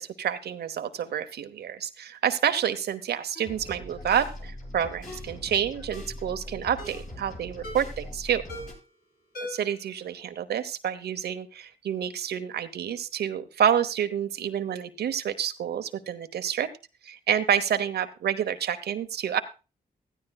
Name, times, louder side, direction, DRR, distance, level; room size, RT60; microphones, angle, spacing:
voice 1, 0.0-8.4 9.4-16.7 17.0-19.4, right 9 dB, 85° right, 10 dB, 0.9 m, -28 dB
Ringtone, 3.3-3.6 4.2-4.4 5.1-5.3 5.9-6.2 6.8-7.1 7.6-8.0 8.5-8.9 9.3-9.8 10.1-10.2, left 1 dB, 75° left, 6.3 m, -41 dB
sound 1, 3.4-8.7, left 1 dB, 55° left, 8.0 m, -41 dB
15.5 x 13.0 x 2.3 m, 0.31 s
cardioid pair, 60°, 16 cm